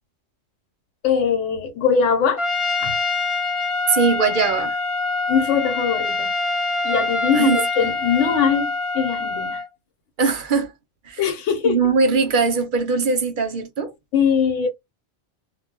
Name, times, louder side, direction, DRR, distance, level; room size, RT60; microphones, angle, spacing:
voice 1, 1.0-2.5 2.8-3.0 5.3-6.3 6.8-9.6 11.2-11.8 14.1-14.7, left 7 dB, 75° left, 1.0 m, -21 dB
Trumpet, 2.4-9.7, left 3 dB, 40° left, 0.5 m, -24 dB
voice 2, 3.9-4.8 7.3-7.6 10.2-10.7 11.1-11.2 11.6-13.9, right 4 dB, 50° right, 0.7 m, -20 dB
2.2 x 2.1 x 3.7 m
omnidirectional pair, 1.3 m